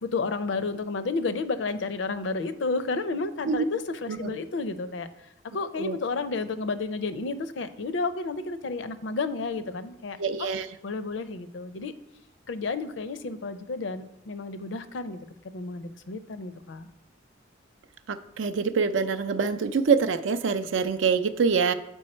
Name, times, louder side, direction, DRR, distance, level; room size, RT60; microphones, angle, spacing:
voice 1, 0.0-5.1 5.4-10.5 10.8-11.9 12.5-15.2 15.5-16.9, left 3 dB, 65° left, 12 dB, 0.5 m, -31 dB
voice 2, 10.2-10.7 18.1-21.7, right 5 dB, 75° right, 10 dB, 0.5 m, -25 dB
7.7 x 4.5 x 4.3 m, 0.87 s
head